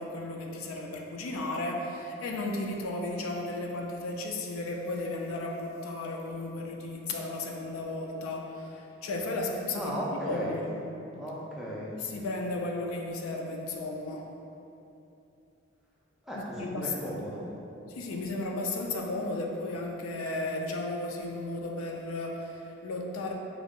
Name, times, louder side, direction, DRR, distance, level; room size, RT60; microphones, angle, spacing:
voice 1, 0.0-10.7 12.0-14.3 16.3-17.1 17.9-23.3, left 2 dB, 85° left, 1 dB, 0.4 m, -34 dB
voice 2, 9.7-10.6 11.2-12.0 16.3-17.5, equal, ahead, -7 dB, 0.3 m, -35 dB
3.6 x 2.0 x 3.6 m, 2.9 s
head